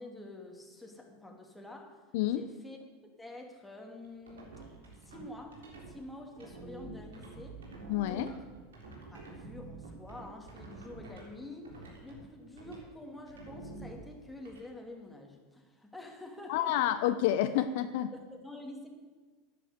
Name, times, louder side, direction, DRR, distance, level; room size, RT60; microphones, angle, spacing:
voice 1, 0.0-2.8 3.2-4.6 5.0-7.6 8.0-8.5 9.1-17.0 18.1-18.9, left 2 dB, 5° left, 1 dB, 2.8 m, -48 dB
voice 2, 2.1-2.4 7.9-8.3 16.5-18.1, left 12 dB, 65° left, 11 dB, 0.6 m, -29 dB
sound 1, 4.3-5.9 6.4-11.3 11.6-12.2 12.6-12.8 13.3-14.6, right 3 dB, 80° right, 3.6 m, -48 dB
10.5 x 9.7 x 8.3 m, 1.4 s
hypercardioid pair, 90°, 0 cm